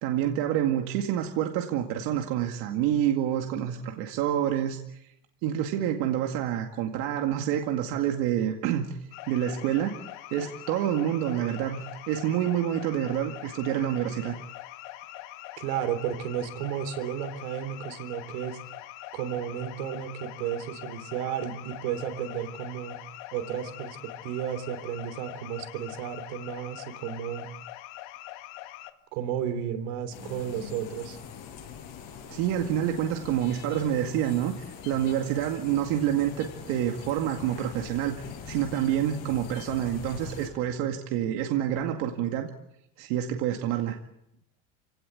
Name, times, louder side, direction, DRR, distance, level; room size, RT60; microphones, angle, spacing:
voice 1, 0.0-5.1 5.4-9.0 9.3-10.0 10.3-14.4 32.3-42.5 43.0-44.0, right 10 dB, 60° right, 3 dB, 2.2 m, -28 dB
sound 1, 9.1-28.9, left 15 dB, 75° left, 2.0 m, -43 dB
voice 2, 15.6-18.6 19.1-23.0 23.3-27.5 29.1-31.2, right 9 dB, 80° right, 9 dB, 3.7 m, -33 dB
sound 2, 30.1-40.5, left 8 dB, 55° left, 7.9 m, -43 dB
28.0 x 17.5 x 8.2 m, 0.80 s
cardioid pair, 175°, 39 cm